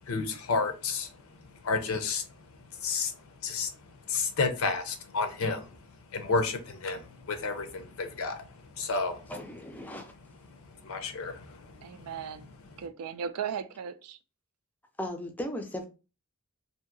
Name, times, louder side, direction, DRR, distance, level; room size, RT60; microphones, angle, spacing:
voice 1, 0.0-2.3 2.5-9.3 10.5-12.1, left 4 dB, 65° left, 0.6 m, -32 dB
voice 2, 9.3-10.1 15.0-15.9, left 1 dB, 5° left, 0.4 m, -36 dB
voice 3, 11.8-12.5 12.8-14.2, right 7 dB, 85° right, 0.4 m, -37 dB
2.8 x 2.6 x 2.5 m
head